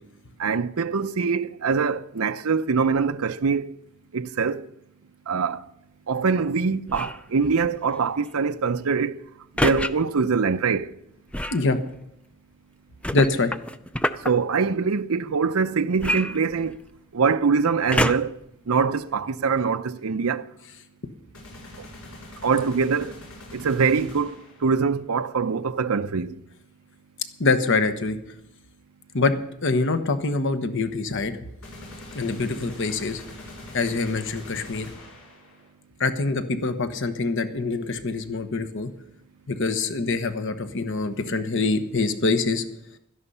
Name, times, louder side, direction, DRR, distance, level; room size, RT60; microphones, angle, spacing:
voice 1, 0.4-3.7 4.1-4.6 5.3-5.6 6.1-9.2 9.6-10.9 14.2-16.8 17.1-18.4 18.7-20.4 21.8-21.9 22.4-23.2 23.5-26.4, right 5 dB, 80° right, 0.7 m, -23 dB
sound 1, 6.9-7.3 9.6-9.9 11.3-11.7 13.0-14.3 16.0-17.0 17.9-18.4 19.1-19.2, left 1 dB, 5° left, 0.5 m, -26 dB
voice 2, 13.1-13.5 27.4-28.2 29.1-29.3 29.6-31.4 32.1-33.2 33.7-34.9 36.0-38.9 39.5-42.6, left 3 dB, 60° left, 1.2 m, -24 dB
sound 2, 21.3-24.7 31.6-35.7, left 1 dB, 85° left, 7.4 m, -43 dB
16.5 x 13.0 x 5.6 m
head